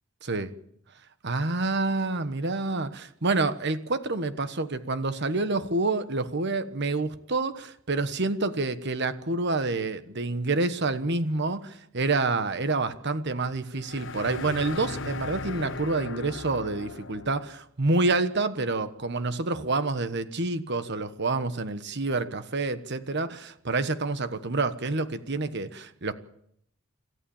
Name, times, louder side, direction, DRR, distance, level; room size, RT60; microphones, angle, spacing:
voice 1, 0.2-0.5 1.2-26.1, right 3 dB, 55° right, 11 dB, 1.3 m, -28 dB
sound 1, 13.8-17.5, left 3 dB, 65° left, 1.0 m, -37 dB
27.5 x 14.5 x 7.2 m, 0.72 s
head